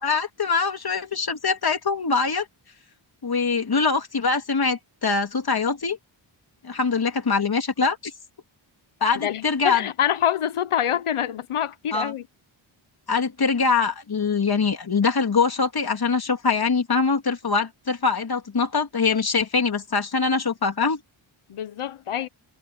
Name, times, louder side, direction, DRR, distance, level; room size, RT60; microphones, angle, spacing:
voice 1, 0.0-2.5 3.2-6.0 6.6-8.1 9.0-9.8 11.9-12.1 13.1-21.0, left 4 dB, 50° left, 3.1 m, -23 dB
voice 2, 9.1-12.2 21.5-22.3, left 10 dB, 85° left, 1.2 m, -26 dB
wide cardioid pair, 105°, 49 cm